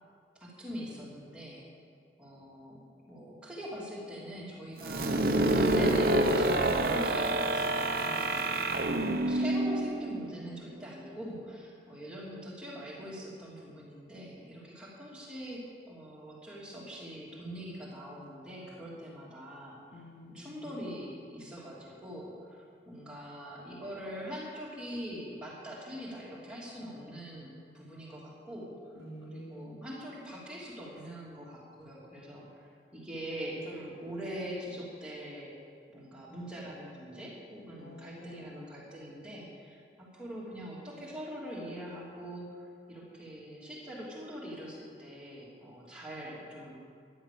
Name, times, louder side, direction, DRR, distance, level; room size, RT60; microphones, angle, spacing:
voice 1, 0.4-1.7 2.2-2.8 3.1-8.7 9.0-19.8 20.3-28.7 29.3-35.5 35.9-46.7, equal, 5° right, -6 dB, 3.1 m, -43 dB
sound 1, 4.8-10.5, right 1 dB, 50° right, 0.9 m, -27 dB
voice 2, 8.0-9.1 19.9-20.7 28.9-29.8 37.8-38.6, equal, 70° left, -2 dB, 2.7 m, -48 dB
14.5 x 11.5 x 6.9 m, 2.2 s
head